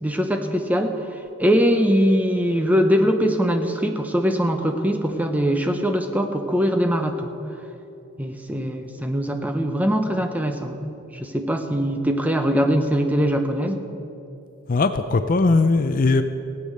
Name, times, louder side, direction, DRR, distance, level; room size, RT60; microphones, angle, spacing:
voice 1, 0.0-7.3 8.2-13.8, equal, 5° right, 5 dB, 0.7 m, -22 dB
voice 2, 14.7-16.2, left 3 dB, 40° left, 9 dB, 0.4 m, -19 dB
16.0 x 8.3 x 6.6 m, 2.9 s
head